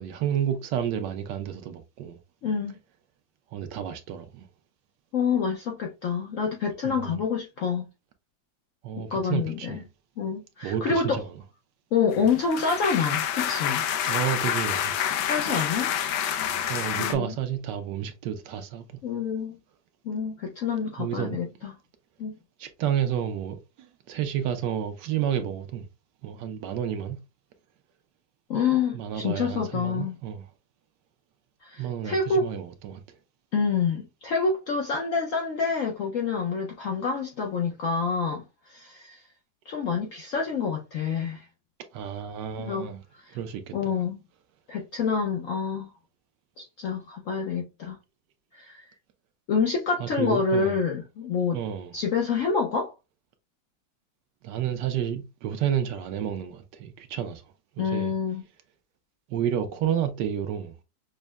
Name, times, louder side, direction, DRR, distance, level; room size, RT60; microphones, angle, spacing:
voice 1, 0.0-2.2 3.5-4.5 6.8-7.2 8.8-9.8 10.6-11.3 14.0-14.9 16.7-18.8 21.0-21.4 22.6-25.9 26.2-27.2 28.9-30.4 31.8-33.0 41.9-43.0 43.3-44.0 50.0-50.8 51.5-51.9 54.4-57.4 57.8-58.1 59.3-60.8, right 9 dB, 70° right, 1.2 m, -30 dB
voice 2, 2.4-2.8 5.1-7.9 9.0-9.8 10.2-11.2 11.9-13.8 15.3-15.9 17.0-17.3 19.0-19.6 20.0-21.7 22.2-22.3 28.5-30.2 31.6-32.5 33.5-39.2 39.7-41.5 42.6-42.9 43.2-43.4 43.7-44.2 44.7-45.9 46.6-48.0 48.5-48.8 49.5-51.6 51.9-52.9 57.8-58.4, left 5 dB, 70° left, 0.7 m, -27 dB
sound 1, 12.1-17.1, left 9 dB, 90° left, 1.4 m, -28 dB
6.3 x 2.1 x 2.2 m
omnidirectional pair, 2.0 m